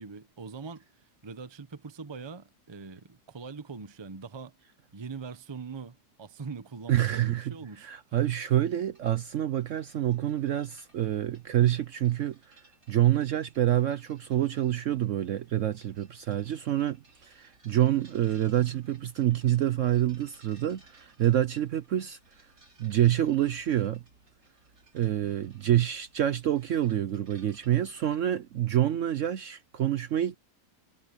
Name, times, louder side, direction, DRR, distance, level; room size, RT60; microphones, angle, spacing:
voice 1, 0.0-4.6 4.9-7.9, right 5 dB, 25° right, 0.7 m, -42 dB
voice 2, 6.9-7.5 7.8-12.6 12.9-22.2 22.8-24.0 24.9-30.4, right 12 dB, 60° right, 0.9 m, -27 dB
sound 1, 8.9-28.1, right 2 dB, 85° right, 6.5 m, -62 dB
omnidirectional pair, 1.7 m